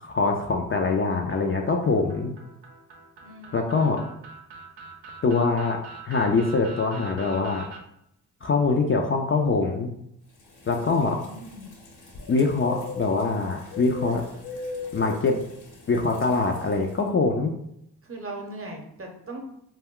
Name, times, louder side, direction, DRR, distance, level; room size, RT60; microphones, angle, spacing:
voice 1, 0.0-2.3 3.5-4.0 5.2-5.8 6.0-7.7 8.4-9.9 10.7-11.2 12.3-14.2 14.9-15.4 15.9-17.5, left 4 dB, 30° left, 2 dB, 0.4 m, -23 dB
sound 1, 1.3-7.8, right 5 dB, 75° right, 0.6 m, -44 dB
voice 2, 3.2-4.0 10.8-11.7 18.1-19.4, right 1 dB, 35° right, 1 dB, 0.8 m, -39 dB
sound 2, 10.4-17.0, left 2 dB, 65° left, 0.9 m, -40 dB
2.2 x 2.1 x 3.6 m, 0.76 s
supercardioid pair, 50°, 41 cm